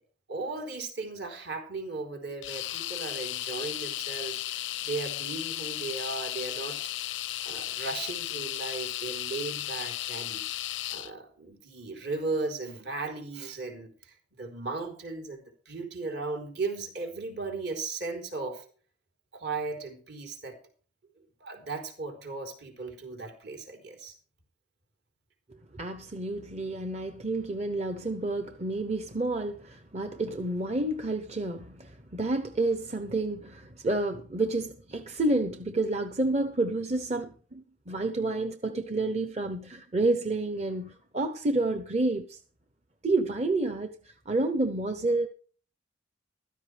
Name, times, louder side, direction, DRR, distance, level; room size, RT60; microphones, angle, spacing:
voice 1, 0.3-6.8 7.4-10.4 10.9-18.6 19.3-20.6 21.4-24.2, right 3 dB, 65° right, 3.9 m, -36 dB
sound 1, 2.4-11.1, left 14 dB, 85° left, 0.5 m, -35 dB
voice 2, 25.7-42.4 43.0-45.3, right 2 dB, 35° right, 0.9 m, -29 dB
15.0 x 13.5 x 3.4 m
head